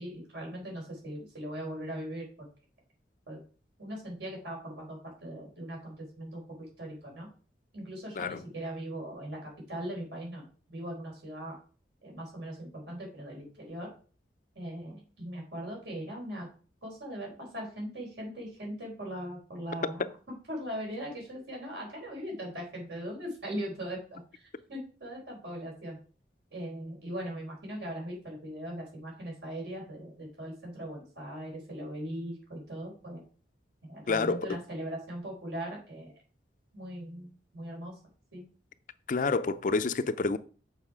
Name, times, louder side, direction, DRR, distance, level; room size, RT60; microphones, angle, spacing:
voice 1, 0.0-2.3 3.3-3.4 3.8-7.3 7.7-10.4 10.7-11.6 12.0-13.9 14.5-16.5 16.8-20.1 20.5-26.0 26.5-33.2 33.8-36.1 36.7-37.3 37.5-38.0 38.3-38.5, right 1 dB, 75° right, 4.3 m, -40 dB
voice 2, 34.1-34.6 39.1-40.4, left 4 dB, 45° left, 0.4 m, -29 dB
7.2 x 5.7 x 4.8 m
head